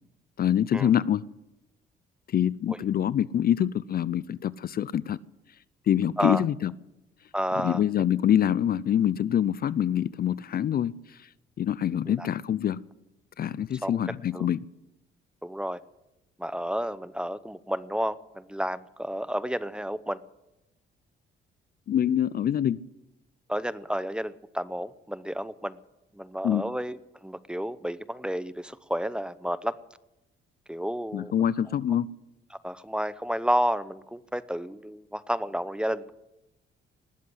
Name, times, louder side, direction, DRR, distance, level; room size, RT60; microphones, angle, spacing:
voice 1, 0.4-1.2 2.3-5.2 5.9-6.7 7.5-11.3 11.6-12.8 13.4-14.6 21.9-22.8 26.4-26.6 31.1-32.1, left 10 dB, 50° left, 20 dB, 0.5 m, -25 dB
voice 2, 7.3-7.8 12.1-12.3 13.8-14.0 14.3-14.5 15.4-15.8 16.4-20.2 23.5-25.8 26.1-29.8 30.7-31.3 32.6-36.1, equal, 5° right, 16 dB, 0.7 m, -31 dB
19.5 x 7.6 x 9.9 m, 0.95 s
cardioid pair, 90°, 20 cm